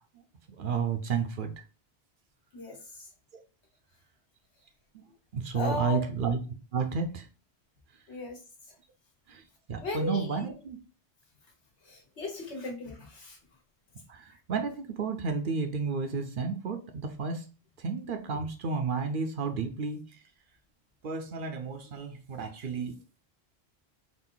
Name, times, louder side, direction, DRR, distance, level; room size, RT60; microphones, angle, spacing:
voice 1, 0.6-1.5 5.3-6.4 6.7-7.2 9.3-9.4 9.7-10.8 14.1-17.4 17.8-20.0 21.0-22.9, right 5 dB, 60° right, 6 dB, 0.7 m, -31 dB
voice 2, 2.5-3.0 5.5-6.0 8.1-8.4 9.8-10.5 11.9-13.4, left 3 dB, 80° left, 0 dB, 1.4 m, -36 dB
3.9 x 2.5 x 3.7 m, 0.35 s
omnidirectional pair, 1.1 m